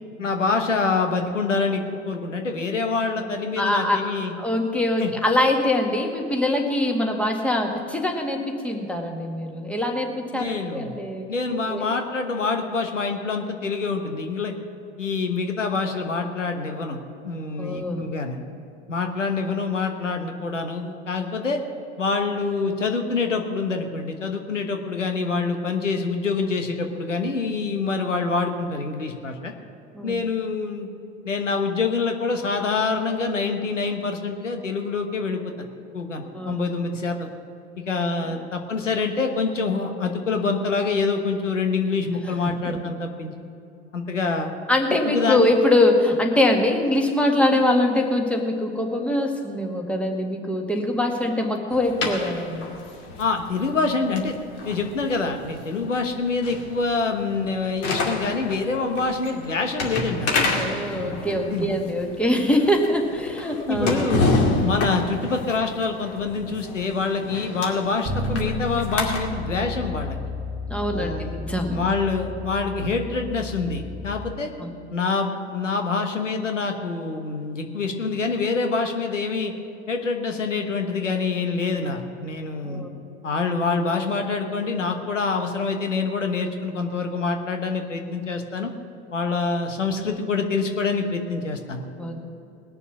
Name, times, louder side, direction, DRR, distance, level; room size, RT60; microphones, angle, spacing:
voice 1, 0.2-4.3 5.0-5.1 10.3-10.9 11.3-14.5 15.0-18.4 18.9-21.6 22.0-29.5 30.0-30.9 31.2-35.5 35.9-37.3 37.9-43.3 43.9-44.5 45.0-45.5 53.2-54.3 54.6-60.5 61.5-61.7 63.7-70.2 70.9-71.4 71.7-74.5 74.9-79.5 79.9-82.8 83.2-88.7 89.1-91.8, left 4 dB, 90° left, 5 dB, 1.3 m, -26 dB
voice 2, 3.6-4.0 4.4-11.3 11.7-11.9 17.6-18.0 29.9-30.2 36.3-36.6 38.2-38.4 42.6-42.8 44.7-52.7 60.5-64.2 70.7-71.8 74.6-74.7 82.6-82.9 92.0-92.2, left 1 dB, 5° left, 1 dB, 1.8 m, -23 dB
sound 1, 51.7-69.2, left 2 dB, 45° left, 2.4 m, -29 dB
Bass guitar, 68.0-74.3, left 2 dB, 30° right, 1.3 m, -32 dB
20.0 x 6.9 x 6.1 m, 2.7 s
hypercardioid pair, 85°, 36 cm